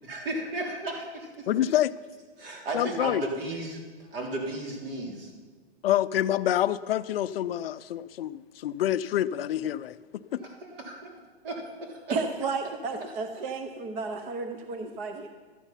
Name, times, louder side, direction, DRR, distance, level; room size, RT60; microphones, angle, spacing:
voice 1, 0.0-1.7 2.4-3.8 4.1-5.3 10.3-12.2, right 2 dB, 60° right, 3.6 m, -35 dB
voice 2, 1.5-1.9 2.7-3.2 5.8-10.0 10.3-10.4, left 12 dB, 65° left, 0.5 m, -27 dB
voice 3, 12.1-15.3, right 4 dB, 20° right, 0.5 m, -32 dB
13.0 x 10.0 x 5.7 m
hypercardioid pair, 145°, 32 cm